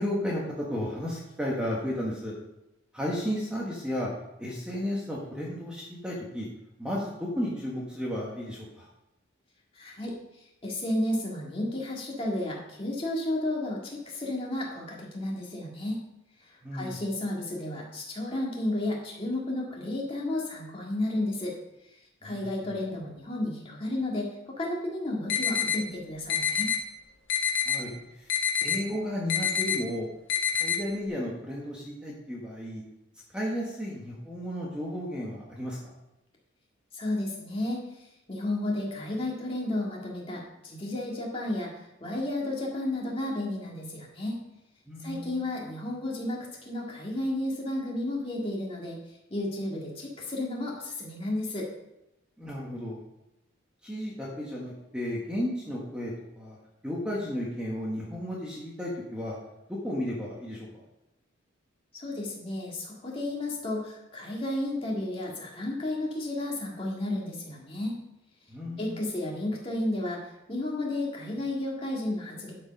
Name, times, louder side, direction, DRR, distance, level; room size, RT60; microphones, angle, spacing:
voice 1, 0.0-2.3 2.9-4.1 4.4-6.5 6.8-8.9 16.6-16.9 22.2-22.4 27.6-30.1 30.5-32.8 33.3-35.8 44.9-45.4 52.4-53.0 53.8-56.6 56.8-59.4 59.7-60.7 68.5-69.0, equal, 5° right, -5 dB, 1.4 m, -33 dB
voice 2, 9.7-10.1 10.6-16.0 16.7-21.5 22.2-26.7 36.9-37.8 38.3-41.7 42.0-44.4 45.0-49.0 49.3-51.7 61.9-68.0 68.8-72.5, left 1 dB, 25° left, -3 dB, 2.1 m, -32 dB
sound 1, 25.3-25.8 26.3-26.8 27.3-27.8 28.3-28.8 29.3-29.8 30.3-30.8, left 8 dB, 60° left, 1.4 m, -26 dB
11.5 x 4.9 x 5.3 m, 0.88 s
head